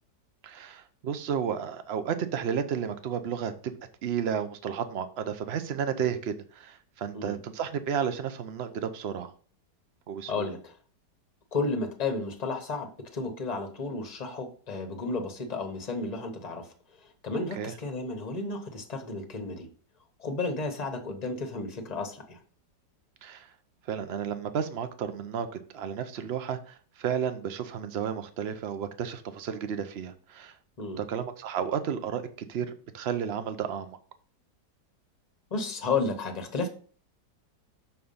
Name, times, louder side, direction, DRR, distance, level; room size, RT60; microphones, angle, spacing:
voice 1, 0.4-3.7 4.0-9.3 10.1-10.5 17.5-17.7 23.2-23.5 23.9-30.6 31.0-34.0, right 8 dB, 70° right, 10 dB, 0.6 m, -32 dB
voice 2, 10.3-10.7 11.5-16.7 17.2-19.7 20.2-22.4 30.8-31.0 35.5-36.7, left 3 dB, 25° left, 6 dB, 1.0 m, -32 dB
6.4 x 4.6 x 5.5 m, 0.43 s
omnidirectional pair, 1.9 m